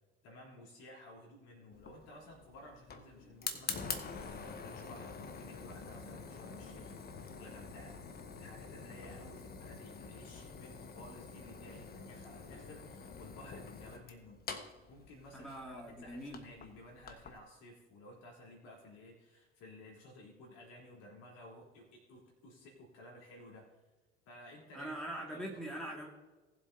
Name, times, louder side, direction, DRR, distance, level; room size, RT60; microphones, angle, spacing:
voice 1, 0.2-14.4 14.9-23.6 24.3-24.9 25.3-25.6, left 1 dB, 55° left, -2 dB, 3.6 m, -55 dB
Fire, 1.7-17.4, left 5 dB, 30° left, 1.2 m, -46 dB
voice 2, 15.3-16.4 24.7-26.1, right 1 dB, ahead, -1 dB, 2.1 m, -42 dB
19.0 x 7.7 x 2.8 m, 1.2 s
figure-of-eight pair, 60°, 31 cm